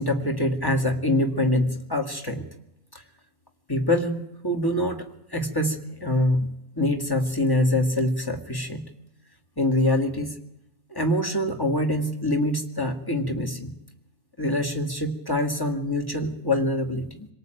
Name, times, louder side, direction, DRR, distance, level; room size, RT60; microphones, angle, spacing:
voice 1, 0.0-2.5 2.9-3.0 3.7-5.0 5.3-8.9 9.6-10.3 10.9-13.7 14.4-17.3, left 1 dB, 15° left, 6 dB, 2.3 m, -25 dB
25.5 x 18.0 x 9.2 m, 0.85 s
omnidirectional pair, 1.5 m